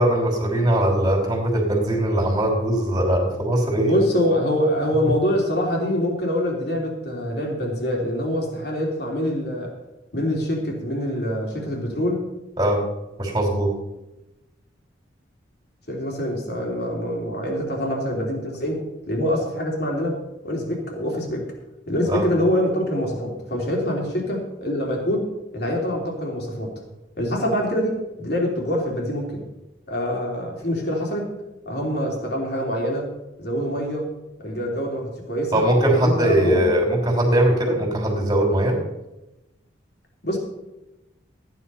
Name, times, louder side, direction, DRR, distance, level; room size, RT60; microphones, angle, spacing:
voice 1, 0.0-3.9 12.6-12.8 13.2-13.7 22.1-22.2 35.5-38.8, right 1 dB, 20° right, 1 dB, 3.0 m, -20 dB
voice 2, 3.9-9.8 10.1-12.3 15.9-21.5 21.9-26.7 27.2-29.4 29.9-31.3 31.7-33.1 33.4-34.1 34.4-35.6 35.9-36.7 40.2-40.4, equal, 55° left, 0 dB, 3.4 m, -25 dB
14.0 x 9.5 x 5.6 m, 0.98 s
head